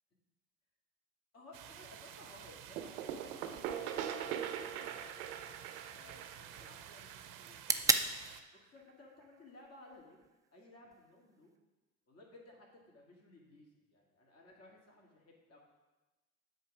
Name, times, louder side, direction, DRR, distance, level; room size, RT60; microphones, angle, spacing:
voice 1, 1.3-5.3 5.9-8.1 8.5-10.3 10.5-11.5 12.1-15.6, left 2 dB, 35° left, -2 dB, 2.1 m, -58 dB
sound 1, 1.5-8.4, right 10 dB, 50° right, 0.7 m, -52 dB
sound 2, 2.8-8.3, right 9 dB, 90° right, 0.7 m, -42 dB
sound 3, 3.6-11.6, right 4 dB, 10° right, 0.3 m, -40 dB
7.8 x 4.0 x 6.0 m, 1.1 s
hypercardioid pair, 80°, 41 cm